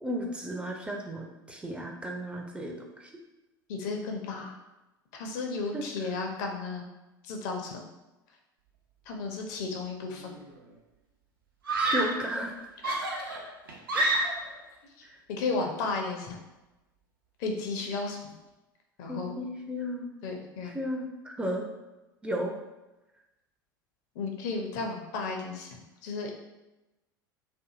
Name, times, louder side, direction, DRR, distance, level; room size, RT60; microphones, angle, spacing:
voice 1, 0.0-3.1 5.7-5.9 11.7-12.5 13.9-14.3 15.1-15.2 19.1-20.1 20.6-21.7 22.2-22.6, equal, 10° right, 0 dB, 0.4 m, -34 dB
voice 2, 3.7-4.6 5.1-6.9 7.2-7.8 9.1-10.4 12.8-12.9 13.3-13.4 15.0-16.4 17.4-18.3 19.0-19.4 20.2-20.7 24.2-26.3, left 4 dB, 60° left, 2 dB, 0.5 m, -34 dB
Screaming, 10.1-10.6 11.6-12.3 12.8-14.6, right 2 dB, 80° right, 0.5 m, -29 dB
2.6 x 2.5 x 2.4 m, 1.0 s
figure-of-eight pair, 75°, 11 cm